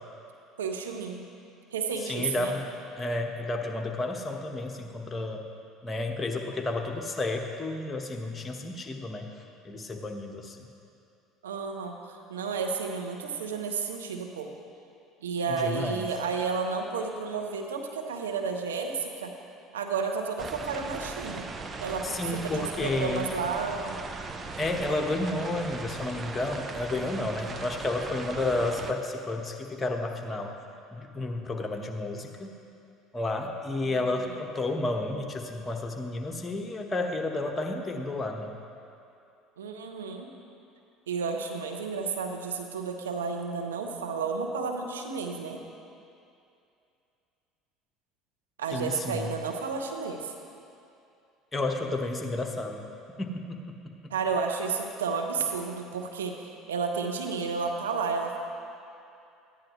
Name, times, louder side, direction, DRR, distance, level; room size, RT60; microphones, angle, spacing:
voice 1, 0.6-1.3 1.7-2.6 11.4-14.5 15.2-19.3 19.7-21.5 21.8-24.0 33.8-34.4 39.6-40.3 41.1-45.6 48.6-50.3 54.1-58.4, right 5 dB, 90° right, 3 dB, 0.8 m, -32 dB
voice 2, 2.1-2.7 3.0-5.5 5.8-9.3 9.6-10.7 15.5-16.1 22.0-23.3 24.6-30.6 30.9-32.5 33.1-38.5 48.7-49.3 51.5-52.9 53.2-54.1, left 2 dB, 20° left, 2 dB, 1.2 m, -31 dB
sound 1, 20.4-28.9, right 4 dB, 30° right, 0.8 m, -39 dB
14.0 x 10.0 x 3.1 m, 2.6 s
hypercardioid pair, 70°, 0 cm